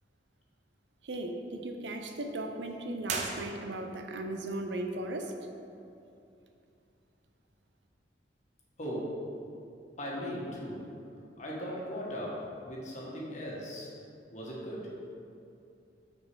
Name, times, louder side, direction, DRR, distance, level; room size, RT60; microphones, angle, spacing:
voice 1, 1.0-5.3, right 1 dB, 75° right, 5 dB, 0.7 m, -37 dB
sound 1, 3.0-4.1, right 4 dB, 40° right, 0.7 m, -37 dB
voice 2, 8.8-9.1 10.0-10.8 11.4-13.9 14.3-14.8, equal, 40° left, -5 dB, 1.5 m, -38 dB
6.4 x 4.4 x 6.2 m, 2.6 s
head